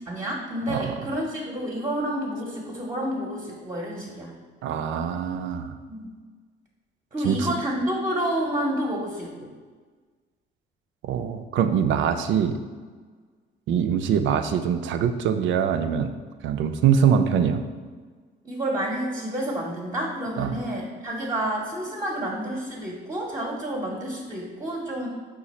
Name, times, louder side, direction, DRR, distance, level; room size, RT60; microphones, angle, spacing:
voice 1, 0.0-4.4 5.9-6.1 7.1-9.5 18.4-25.1, right 1 dB, 20° right, -2 dB, 0.8 m, -29 dB
voice 2, 4.6-5.7 7.2-7.5 11.0-12.6 13.7-16.1 16.4-17.6 20.4-20.6, right 8 dB, 75° right, 8 dB, 0.4 m, -23 dB
5.0 x 2.4 x 4.1 m, 1.5 s
cardioid pair, 90°, 20 cm